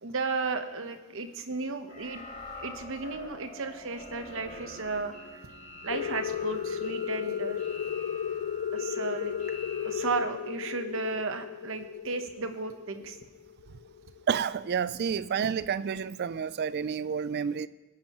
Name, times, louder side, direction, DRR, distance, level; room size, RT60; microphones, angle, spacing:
voice 1, 0.0-2.2 2.6-5.4 5.8-7.6 8.7-9.3 9.8-13.2, right 4 dB, 65° right, 8 dB, 1.0 m, -34 dB
sound 1, 1.9-10.1, left 1 dB, 40° left, 2.7 m, -45 dB
sound 2, 5.9-14.2, left 8 dB, 80° left, 0.3 m, -34 dB
voice 2, 14.3-17.7, right 7 dB, 50° right, 16 dB, 0.4 m, -30 dB
21.0 x 10.5 x 3.0 m, 1.2 s
head